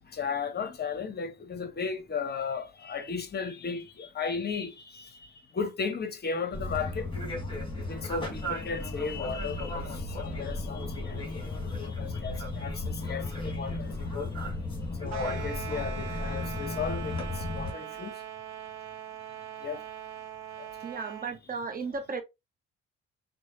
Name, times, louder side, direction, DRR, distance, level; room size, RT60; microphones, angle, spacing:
voice 1, 0.1-5.1 5.5-7.1 7.9-9.9 10.2-11.5 11.8-14.3 15.0-18.1 19.6-19.8, left 5 dB, 30° left, 0.9 m, -35 dB
sound 1, 6.5-17.7, left 2 dB, 15° left, 1.9 m, -35 dB
sound 2, 15.1-21.3, right 10 dB, 55° right, 0.9 m, -41 dB
voice 2, 20.8-22.2, right 4 dB, 25° right, 0.8 m, -35 dB
6.0 x 2.2 x 2.9 m
figure-of-eight pair, 50°, 33 cm